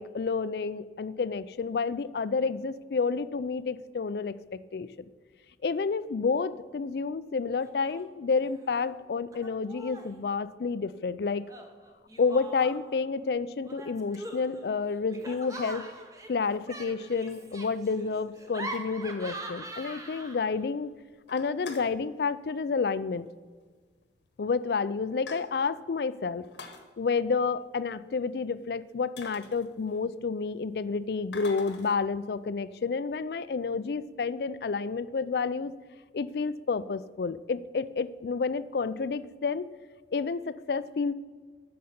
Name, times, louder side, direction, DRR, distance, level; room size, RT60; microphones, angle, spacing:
voice 1, 0.0-4.3 4.7-4.9 5.6-11.5 12.2-15.9 16.3-20.9 21.3-23.3 24.4-26.4 27.0-35.7 36.1-39.7 40.1-41.1, left 4 dB, 60° left, 16 dB, 0.4 m, -30 dB
Laughter, 7.6-8.0 8.3-8.9 9.3-10.2 11.5-13.0 13.7-20.6, right 2 dB, 20° right, 0.9 m, -43 dB
sound 1, 15.0-15.2 15.9-16.0 16.9-17.9 18.4-18.5 18.7-18.8 19.1-19.2 19.5-19.6 20.0-20.4 20.8-20.9 21.2-22.0 23.1-23.3 23.6-23.7 24.4-24.5 24.8-25.8 26.4-26.8 28.6-28.7 29.2-30.2 31.3-32.0, left 4 dB, 85° left, 1.3 m, -46 dB
9.3 x 6.5 x 5.8 m, 1.5 s
head